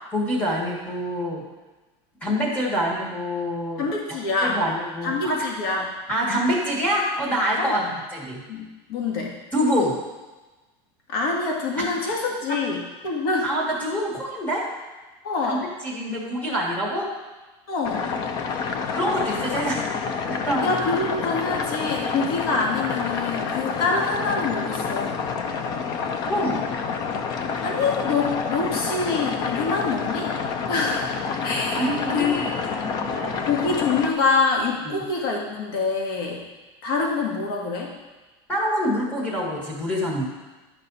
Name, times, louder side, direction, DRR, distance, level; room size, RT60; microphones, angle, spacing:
voice 1, 0.1-1.4 2.2-5.5 6.1-7.8 8.1-8.4 9.5-9.9 11.8-11.9 12.5-12.6 13.4-14.7 15.4-17.1 18.9-19.8 20.3-20.7 26.3-26.6 31.7-33.5 34.8-35.0 38.5-40.2, equal, 10° left, -4 dB, 1.9 m, -26 dB
voice 2, 3.8-4.6 5.0-5.9 7.6-7.9 8.5-9.3 11.1-13.5 15.2-15.7 17.7-18.0 20.6-25.2 27.6-30.3 30.7-31.1 31.4-31.9 32.1-32.5 33.5-36.4 36.8-37.9, left 4 dB, 70° left, 0 dB, 1.8 m, -25 dB
sound 1, 17.8-34.1, left 5 dB, 30° left, 0.5 m, -28 dB
11.0 x 5.5 x 4.1 m, 1.2 s
supercardioid pair, 175°, 14 cm